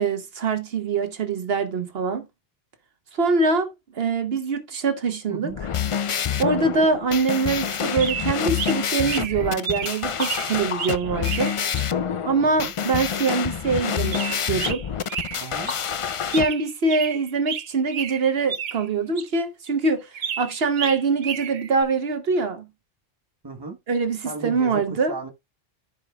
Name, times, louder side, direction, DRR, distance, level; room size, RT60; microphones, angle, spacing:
voice 1, 0.0-2.3 3.1-5.5 6.4-11.5 12.2-14.2 14.5-14.8 16.3-20.1 20.4-22.7 23.9-25.1, right 4 dB, 70° right, 1.2 m, -24 dB
sound 1, 5.5-16.5, left 8 dB, 50° left, 0.4 m, -27 dB
sound 2, 7.9-11.9 14.0-15.8 16.1-18.9 19.2-19.3 20.1-21.8, right 8 dB, 55° right, 0.7 m, -32 dB
voice 2, 12.4-12.7 15.4-15.7 23.4-23.8 24.2-25.3, right 4 dB, 25° right, 1.2 m, -35 dB
14.5 x 5.0 x 2.3 m
omnidirectional pair, 1.0 m